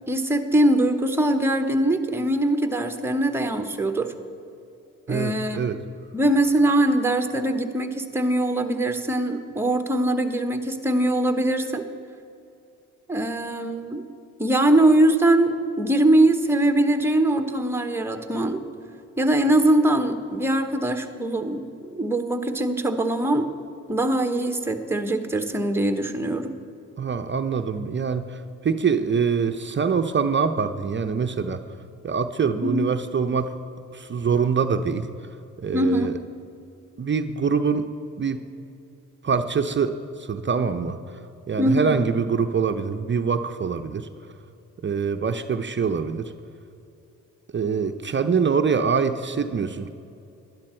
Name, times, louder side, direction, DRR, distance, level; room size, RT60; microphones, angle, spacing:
voice 1, 0.1-4.1 5.1-5.6 6.1-11.8 13.1-14.0 14.4-18.6 19.2-23.5 23.9-26.5 32.6-32.9 35.7-36.2 41.6-41.9, right 1 dB, 5° right, 7 dB, 1.0 m, -22 dB
voice 2, 5.1-5.8 27.0-31.6 32.0-33.5 33.9-35.1 35.6-36.1 37.0-37.9 38.2-38.4 39.2-41.2 41.5-44.1 44.8-46.3 47.5-49.9, right 5 dB, 35° right, 8 dB, 0.6 m, -24 dB
11.5 x 11.0 x 4.4 m, 2.6 s
supercardioid pair, 65°, 33 cm